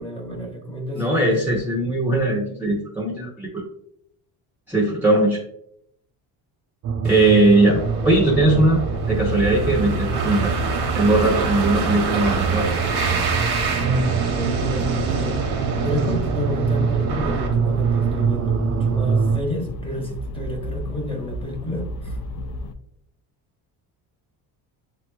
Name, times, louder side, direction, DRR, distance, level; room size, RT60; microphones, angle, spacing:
voice 1, 0.0-1.3 13.7-15.4 15.8-22.2, left 1 dB, 15° left, 1 dB, 1.0 m, -30 dB
voice 2, 1.0-3.5 4.7-5.4 7.0-8.8 9.1-10.5 10.9-12.7, right 2 dB, 5° right, -3 dB, 0.7 m, -19 dB
sound 1, 6.8-19.4, right 6 dB, 45° right, 0.4 m, -24 dB
sound 2, 7.0-18.2, right 4 dB, 75° right, 1.1 m, -29 dB
sound 3, 7.7-22.7, left 1 dB, 50° left, 0.4 m, -33 dB
6.8 x 3.0 x 2.2 m, 0.74 s
cardioid pair, 125°, 38 cm